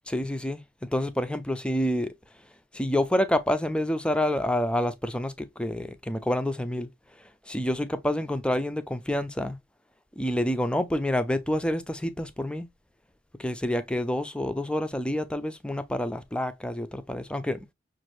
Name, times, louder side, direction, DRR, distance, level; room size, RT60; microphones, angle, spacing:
voice 1, 0.1-0.6 0.9-2.1 2.7-6.9 7.5-9.6 10.2-12.7 13.4-17.6, left 1 dB, 5° left, 0.4 m, -28 dB
6.3 x 2.5 x 3.0 m
head